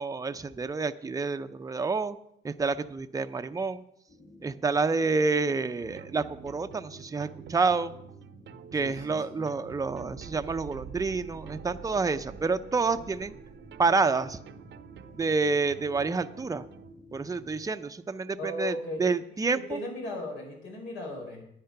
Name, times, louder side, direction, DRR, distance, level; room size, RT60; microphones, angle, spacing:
voice 1, 0.0-2.2 2.4-3.8 4.4-7.9 8.7-13.3 13.8-14.4 15.1-16.7 17.1-18.7 19.0-19.8, right 4 dB, 15° right, 9 dB, 0.6 m, -28 dB
sound 1, 4.1-17.7, left 2 dB, 30° left, 2.4 m, -53 dB
sound 2, 5.8-16.9, right 9 dB, 65° right, 0.7 m, -47 dB
voice 2, 8.7-9.4 18.4-19.0 19.4-21.4, left 2 dB, 80° left, 1 dB, 4.8 m, -37 dB
10.5 x 9.4 x 5.8 m, 0.75 s
cardioid pair, 90°, 20 cm